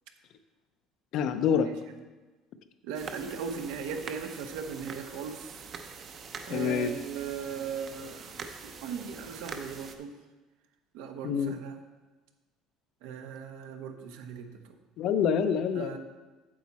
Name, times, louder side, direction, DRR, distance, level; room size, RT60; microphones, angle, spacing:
voice 1, 1.1-1.7 6.5-7.0 11.2-11.6 15.0-16.0, left 7 dB, 50° left, 10 dB, 0.6 m, -26 dB
voice 2, 2.8-5.4 6.5-8.3 8.6-10.1 10.9-11.7 13.0-14.5 15.8-16.0, right 6 dB, 85° right, 6 dB, 0.9 m, -38 dB
sound 1, 2.9-10.0, right 5 dB, 35° right, 0.6 m, -44 dB
8.5 x 7.3 x 4.2 m, 1.2 s
cardioid pair, 160°, 0 cm